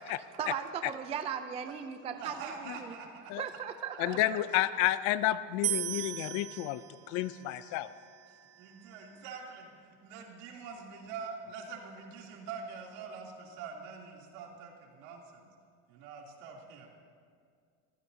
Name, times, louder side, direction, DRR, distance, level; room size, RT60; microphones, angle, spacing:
voice 1, 0.4-2.5 2.8-2.9 3.4-4.4, right 7 dB, 15° right, 8 dB, 0.4 m, -37 dB
voice 2, 2.2-3.3 3.9-4.3 8.3-15.5 15.9-16.9, right 5 dB, 75° right, -1 dB, 3.1 m, -45 dB
voice 3, 4.0-6.8 7.1-7.9, left 14 dB, 50° left, 15 dB, 0.5 m, -30 dB
sound 1, 5.6-8.9, right 16 dB, 40° right, 0.7 m, -38 dB
25.0 x 15.5 x 2.7 m, 2.1 s
cardioid pair, 150°, 38 cm